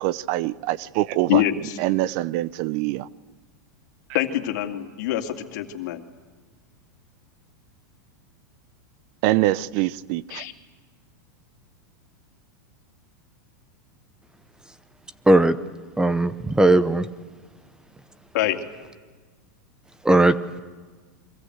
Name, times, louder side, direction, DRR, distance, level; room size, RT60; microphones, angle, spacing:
voice 1, 0.0-1.4 1.8-3.1 9.2-10.4, right 16 dB, 50° right, 0.7 m, -24 dB
voice 2, 1.3-1.8 4.1-6.0 10.3-10.5 18.3-18.6, left 13 dB, 65° left, 2.5 m, -25 dB
voice 3, 15.3-15.6 16.0-17.1 20.0-20.3, right 2 dB, 5° right, 0.8 m, -17 dB
29.0 x 23.5 x 8.1 m
hypercardioid pair, 125°, 10 cm